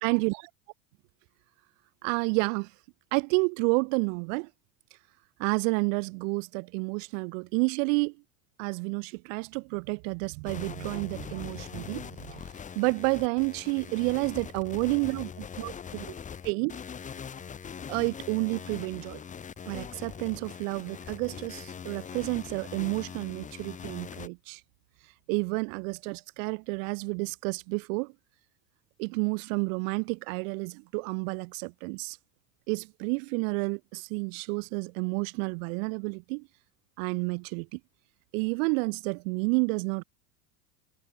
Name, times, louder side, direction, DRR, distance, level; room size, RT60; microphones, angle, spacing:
voice 1, 0.0-0.4 2.0-2.7 3.1-4.5 5.4-8.2 8.6-12.4 12.7-16.1 16.4-16.8 17.9-19.2 19.7-24.6 25.3-28.1 29.0-32.2 32.7-36.5 37.0-37.8 38.3-40.0, right 34 dB, 65° right, 1.0 m, -30 dB
sound 1, 10.5-24.3, left 7 dB, 20° left, 1.0 m, -42 dB
supercardioid pair, 135°, 41 cm